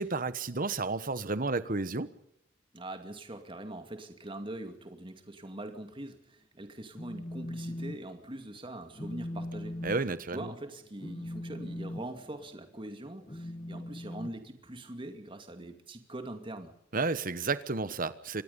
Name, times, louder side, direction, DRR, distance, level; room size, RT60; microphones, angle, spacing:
voice 1, 0.0-2.1 9.8-10.5 16.9-18.4, right 3 dB, 45° right, 14 dB, 1.2 m, -31 dB
voice 2, 2.7-9.8 10.3-16.7, right 1 dB, 25° right, 6 dB, 2.3 m, -43 dB
Telephone, 6.7-8.0 8.3-8.6 8.9-15.1, left 1 dB, 25° left, 1.7 m, -41 dB
25.5 x 20.0 x 5.5 m, 0.78 s
head